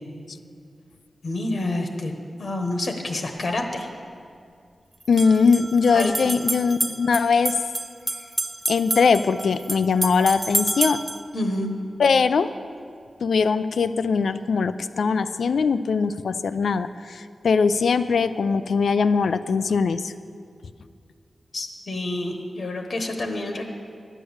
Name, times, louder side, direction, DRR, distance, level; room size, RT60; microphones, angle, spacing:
voice 1, 1.2-2.1 2.4-3.9 5.9-6.2 11.3-11.7 21.5-23.6, left 2 dB, 60° left, 4 dB, 1.1 m, -28 dB
sound 1, 3.4-3.5 5.0-11.3, right 2 dB, 25° right, 0.4 m, -29 dB
voice 2, 5.1-7.6 8.7-11.0 12.0-12.5 13.2-20.1, left 5 dB, 90° left, 12 dB, 0.4 m, -21 dB
11.5 x 8.3 x 7.0 m, 2.3 s
wide cardioid pair, 120°, 0 cm